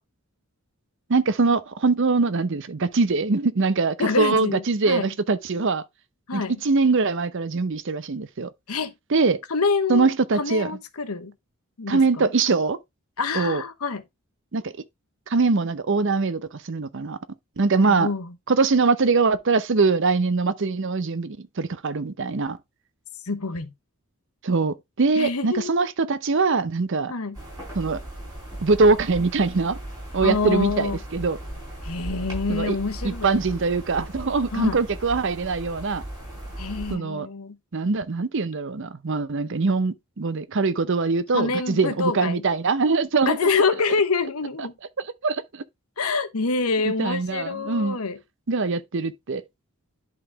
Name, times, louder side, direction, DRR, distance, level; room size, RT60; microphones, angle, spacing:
voice 1, 1.1-5.8 6.3-8.5 9.1-9.4 9.9-10.7 11.9-12.8 13.3-13.6 14.5-14.7 15.3-17.2 17.6-18.1 18.5-22.6 24.4-27.1 27.7-28.0 28.6-29.8 30.1-31.4 32.5-32.8 33.0-36.0 36.9-37.3 37.7-43.5 44.6-44.7 45.2-45.6 46.8-48.0 48.5-49.4, right 4 dB, 55° right, 0.7 m, -23 dB
voice 2, 4.0-5.1 6.3-6.5 8.7-8.9 9.5-11.3 11.8-12.3 13.2-14.0 17.8-18.3 23.3-23.7 25.2-25.9 27.1-27.4 30.2-31.0 31.8-33.3 34.5-34.8 36.6-37.6 41.3-42.4 43.3-44.7 46.0-48.2, left 4 dB, 75° left, 1.0 m, -26 dB
sound 1, 27.3-36.9, right 1 dB, 20° right, 4.8 m, -37 dB
10.5 x 4.1 x 3.4 m
head